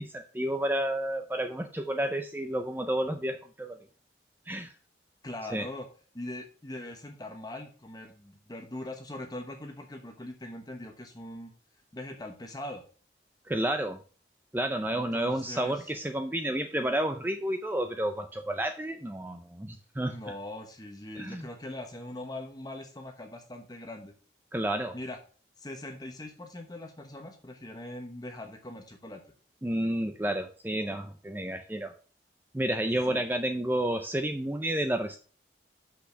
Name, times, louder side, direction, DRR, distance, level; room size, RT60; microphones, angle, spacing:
voice 1, 0.0-3.8 4.5-4.7 5.5-5.7 13.5-14.0 14.5-20.2 21.2-21.5 24.5-25.0 29.6-31.9 32.5-35.2, right 1 dB, 10° right, 7 dB, 0.5 m, -30 dB
voice 2, 5.2-5.9 6.1-11.5 11.9-12.8 14.9-15.9 20.0-24.1 24.9-25.2 25.6-29.2 33.1-33.2, left 1 dB, 20° left, 4 dB, 1.0 m, -41 dB
6.3 x 5.8 x 6.0 m, 0.41 s
head